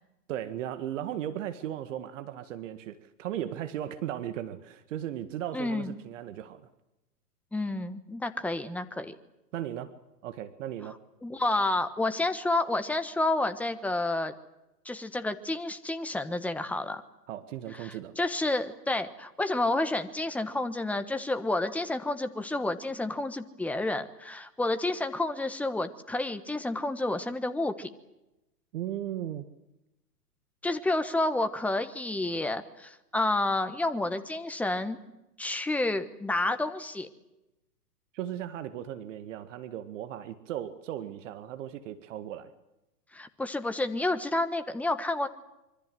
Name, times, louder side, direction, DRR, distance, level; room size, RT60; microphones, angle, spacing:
voice 1, 0.3-6.6 9.5-9.9 10.2-11.0 17.3-18.1 28.7-29.5 38.1-42.5, right 11 dB, 50° right, 10 dB, 2.0 m, -36 dB
voice 2, 5.5-5.9 7.5-9.1 11.2-14.3 14.8-17.0 17.8-27.9 30.6-35.0 35.4-37.1 43.1-45.3, left 2 dB, 5° left, 9 dB, 1.3 m, -30 dB
26.0 x 24.0 x 7.9 m, 0.94 s
hypercardioid pair, 125°, 49 cm